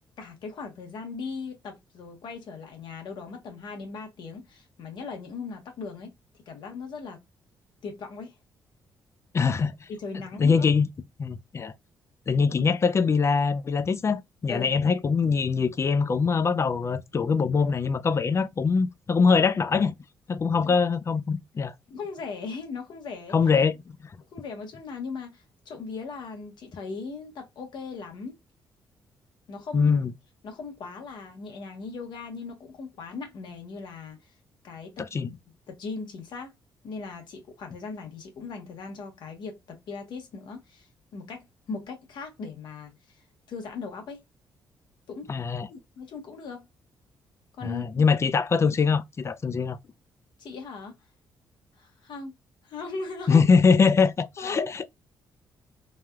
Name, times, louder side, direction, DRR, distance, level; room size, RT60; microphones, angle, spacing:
voice 1, 0.2-6.1 6.5-7.2 7.8-8.4 9.9-10.7 12.5-12.7 14.5-14.7 20.6-20.8 21.9-23.4 24.3-28.4 29.5-30.0 30.4-34.3 34.6-35.3 35.7-36.5 36.8-44.2 45.1-45.3 45.7-46.7 47.6-47.8 50.4-51.0 51.8-52.4 52.6-53.4 54.4-54.7, left 4 dB, 70° left, 1.0 m, -38 dB
voice 2, 9.3-9.9 10.4-10.9 11.2-11.7 12.3-20.0 20.3-21.7 23.3-23.7 29.7-30.1 35.0-35.3 45.3-45.7 47.6-49.8 53.3-54.9, left 5 dB, 35° left, 0.4 m, -23 dB
3.3 x 2.2 x 2.2 m
supercardioid pair, 65°, 8 cm